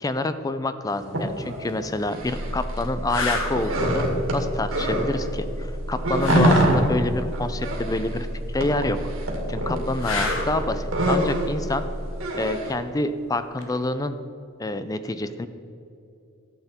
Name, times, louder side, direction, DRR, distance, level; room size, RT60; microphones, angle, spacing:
voice 1, 0.0-4.1 4.3-8.3 8.5-9.0 9.5-11.9 12.4-14.2 14.6-15.5, left 2 dB, 15° left, 11 dB, 0.4 m, -27 dB
sound 1, 1.1-2.9 3.1-5.3 5.6-12.7, right 1 dB, 85° right, 2.2 m, -27 dB
sound 2, 1.5-1.7 2.4-2.5 3.1-3.6 6.2-6.7 10.0-10.6 13.6-13.8, left 1 dB, 80° left, 1.4 m, -23 dB
sound 3, 2.2-12.2, equal, 35° right, 0.5 m, -33 dB
12.5 x 8.1 x 4.3 m, 2.7 s
head